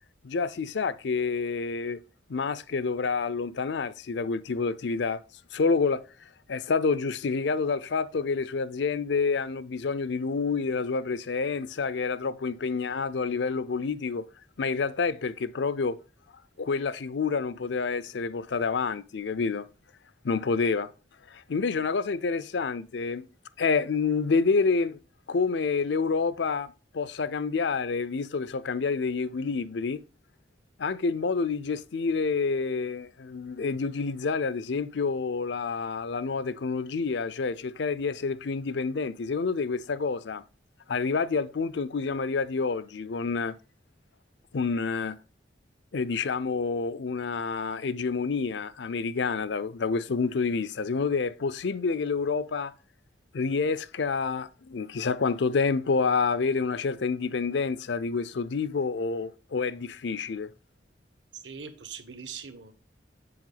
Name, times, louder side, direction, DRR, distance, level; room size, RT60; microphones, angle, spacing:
voice 1, 0.2-2.0 2.3-5.2 5.5-6.0 6.5-14.3 14.6-16.0 16.6-19.7 20.2-20.9 21.3-23.3 23.6-25.0 25.3-30.0 30.8-40.4 40.9-43.6 44.5-45.2 45.9-52.7 53.3-60.5, left 4 dB, 70° left, 0.5 m, -28 dB
voice 2, 61.3-62.7, right 6 dB, 75° right, 1.3 m, -41 dB
7.7 x 7.3 x 3.9 m
head